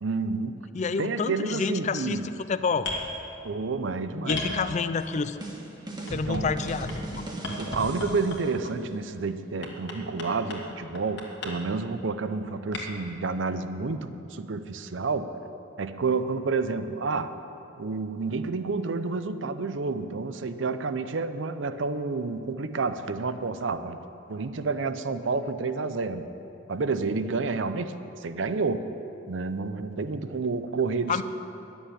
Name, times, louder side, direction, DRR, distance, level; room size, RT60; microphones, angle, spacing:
voice 1, 0.0-0.6 1.0-2.3 3.4-4.4 6.3-6.5 7.6-15.3 15.8-17.3 17.8-24.0 24.3-26.3 26.7-28.9 29.3-31.2, right 4 dB, 75° right, 11 dB, 0.6 m, -29 dB
voice 2, 0.7-2.9 4.3-5.4 6.1-7.2 31.1-31.2, left 5 dB, 40° left, 13 dB, 0.4 m, -29 dB
sound 1, 2.8-3.1 4.3-5.1 6.1-7.0 7.4-8.6 9.6-10.6 10.9-11.5 12.7-12.8, left 2 dB, 65° left, 1.9 m, -34 dB
sound 2, 5.0-8.5, right 1 dB, 25° right, 1.5 m, -37 dB
11.0 x 7.1 x 8.9 m, 2.8 s
head